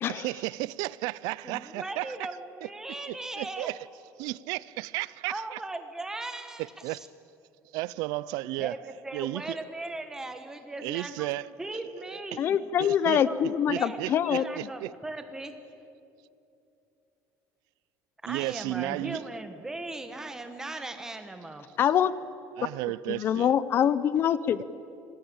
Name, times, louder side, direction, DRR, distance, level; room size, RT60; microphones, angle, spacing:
voice 1, 0.1-2.2 3.1-3.8 4.2-5.6 6.6-7.0 7.7-8.8 9.1-9.6 10.8-11.5 12.8-13.2 13.7-14.9 18.3-19.2 22.6-23.5, right 19 dB, 75° right, 0.5 m, -33 dB
voice 2, 1.4-3.7 5.3-7.1 8.6-12.6 13.0-15.5 18.2-21.7, right 2 dB, 10° right, 1.5 m, -38 dB
voice 3, 12.4-14.4 21.8-22.1 23.1-24.6, left 9 dB, 35° left, 0.6 m, -24 dB
26.5 x 19.0 x 8.8 m
cardioid pair, 175°, 7 cm